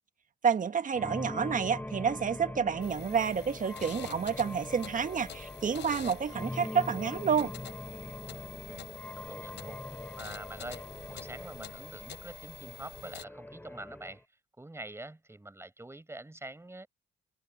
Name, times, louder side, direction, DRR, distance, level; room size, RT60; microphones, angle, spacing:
voice 1, 0.4-7.5, right 6 dB, 40° right, 1.4 m, -29 dB
sound 1, 0.9-14.2, left 1 dB, 10° left, 4.5 m, -42 dB
sound 2, 2.8-13.2, left 9 dB, 65° left, 4.0 m, -48 dB
voice 2, 8.6-9.8 10.2-14.2 14.6-16.9, right 2 dB, 15° right, 6.3 m, -45 dB
cardioid pair, 90°, 20 cm